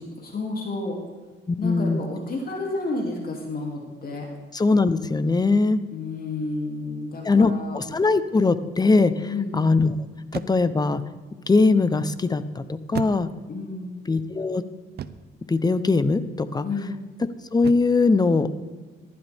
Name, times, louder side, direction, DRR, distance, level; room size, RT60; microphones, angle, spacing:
voice 1, 0.2-1.0 1.6-4.3 5.9-7.9 9.2-9.7 13.5-13.9 16.6-17.0, left 3 dB, 50° left, 0 dB, 2.7 m, -30 dB
voice 2, 1.5-2.0 4.5-5.8 7.2-9.3 9.5-9.9 10.3-11.0 11.5-13.3 14.1-14.6 15.5-16.6 17.5-18.5, left 3 dB, 20° left, 13 dB, 0.8 m, -21 dB
sound 1, 7.8-8.2 10.3-10.9 12.9-13.7 15.0-15.4 17.6-18.1, right 8 dB, 55° right, 0.6 m, -36 dB
15.0 x 12.0 x 3.6 m, 1.4 s
cardioid pair, 90°, 20 cm